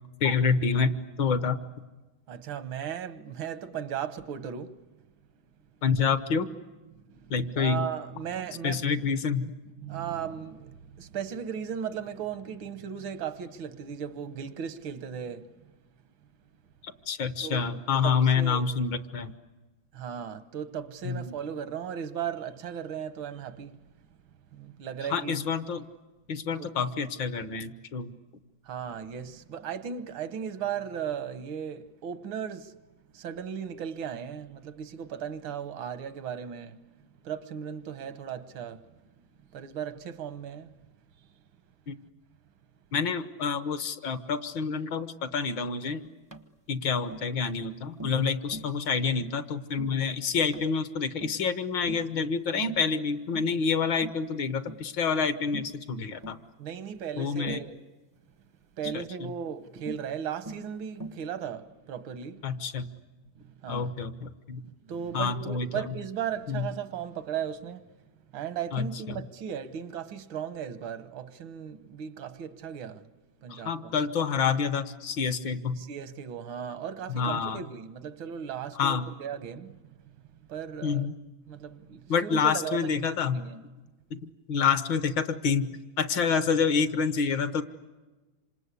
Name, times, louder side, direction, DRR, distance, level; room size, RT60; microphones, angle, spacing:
voice 1, 0.2-1.6 5.8-6.5 7.3-7.9 8.6-9.5 17.1-19.3 21.0-21.3 25.1-25.8 26.3-28.1 41.9-42.0 42.9-46.0 46.7-56.4 57.2-57.6 58.9-59.0 62.4-62.9 63.7-64.6 65.1-65.8 66.5-66.7 68.7-68.9 73.5-75.8 77.1-77.6 78.8-79.0 80.8-81.1 82.1-83.4 84.2-87.6, left 5 dB, 75° left, 1.8 m, -28 dB
voice 2, 2.3-4.8 6.9-9.1 9.8-15.5 17.4-17.7 18.0-18.7 19.9-23.8 24.5-25.5 26.6-26.7 28.7-32.8 33.1-36.8 37.2-38.9 39.2-39.3 39.5-40.7 41.2-41.3 56.6-57.8 58.8-62.6 63.4-64.0 64.6-67.9 68.3-73.0 73.4-73.9 75.8-80.0 80.5-81.1 81.5-83.6, right 8 dB, 90° right, 1.9 m, -37 dB
Tap, 46.3-46.5 47.1-47.3 48.0-48.2 48.5-48.8 49.2-49.4 49.8-50.0 50.5-50.7 51.2-51.5 51.9-52.1 52.7-52.9 53.3-53.6 54.0-54.2 54.7-54.9 55.5-55.8 56.2-56.4 57.5-57.7 58.8-59.1 59.9-60.1 60.5-60.7 61.0-61.3, right 2 dB, 30° right, 0.3 m, -42 dB
27.0 x 26.5 x 8.3 m
omnidirectional pair, 2.1 m